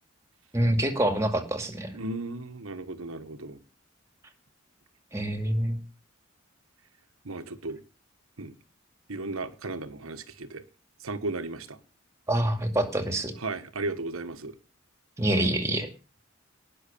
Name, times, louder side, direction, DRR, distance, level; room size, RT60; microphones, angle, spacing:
voice 1, 0.5-1.9 5.1-5.8 12.3-13.3 15.2-15.9, right 1 dB, 15° right, 7 dB, 2.2 m, -26 dB
voice 2, 1.9-3.6 7.2-7.8 8.4-8.5 9.1-10.6 11.0-11.8 13.4-14.5, right 2 dB, 90° right, 9 dB, 1.3 m, -35 dB
19.0 x 6.5 x 6.9 m, 0.34 s
head